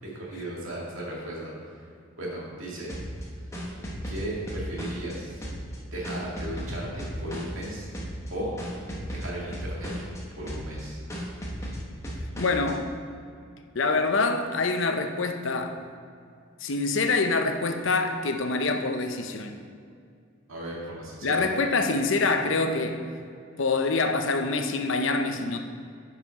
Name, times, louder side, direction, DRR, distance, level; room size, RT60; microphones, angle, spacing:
voice 1, 0.0-1.5 2.2-2.9 4.1-5.4 5.9-7.9 8.3-8.6 9.1-9.9 10.4-11.0 20.5-21.4, right 1 dB, 80° right, -4 dB, 2.2 m, -35 dB
sound 1, 2.9-5.1 5.4-7.7 7.9-8.3 8.6-10.2 10.5-10.8 11.1-12.7, equal, 15° left, 1.1 m, -35 dB
voice 2, 12.4-12.9 13.7-15.8 16.6-19.5 21.2-23.0 23.6-25.6, left 3 dB, 70° left, 6 dB, 0.7 m, -25 dB
9.2 x 5.7 x 4.1 m, 2.3 s
head